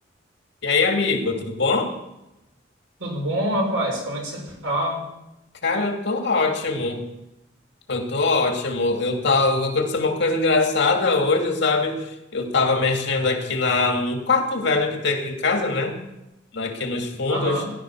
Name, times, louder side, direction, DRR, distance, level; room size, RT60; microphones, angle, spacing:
voice 1, 0.6-1.9 5.6-7.1 7.9-12.0 12.3-16.0 16.5-17.6, left 3 dB, 65° left, 3 dB, 2.5 m, -22 dB
voice 2, 3.0-5.0 17.3-17.7, right 1 dB, 75° right, 1 dB, 5.7 m, -26 dB
17.5 x 12.0 x 6.3 m, 0.92 s
head